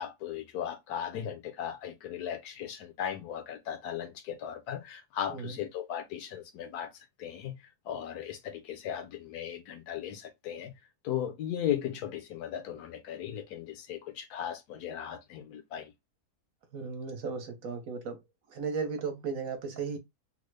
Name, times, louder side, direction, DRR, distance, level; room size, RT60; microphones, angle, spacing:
voice 1, 0.0-15.9, left 9 dB, 75° left, 1.1 m, -37 dB
voice 2, 16.7-18.2 18.5-20.0, right 5 dB, 65° right, 1.2 m, -35 dB
3.7 x 2.0 x 3.2 m
omnidirectional pair, 1.7 m